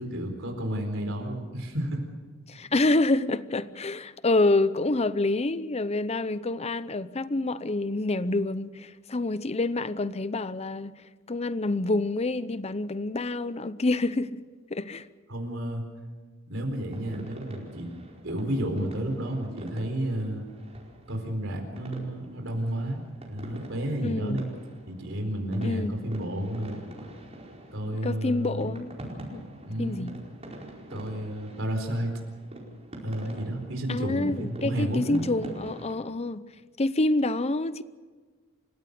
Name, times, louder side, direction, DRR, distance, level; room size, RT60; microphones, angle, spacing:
voice 1, 0.0-2.0 15.3-15.9 16.5-17.9 18.2-20.4 21.1-23.0 23.3-24.5 24.9-26.8 27.7-28.7 29.7-30.0 30.9-32.2 33.0-35.2, right 1 dB, 75° right, 4.4 m, -31 dB
voice 2, 2.5-14.4 14.7-15.1 24.0-24.4 25.6-25.9 28.0-29.0 29.3-29.4 29.8-30.1 33.9-36.5 36.8-37.8, left 2 dB, 30° left, 0.7 m, -27 dB
sound 1, 16.9-35.9, right 1 dB, 30° right, 4.7 m, -45 dB
28.5 x 16.5 x 6.8 m
head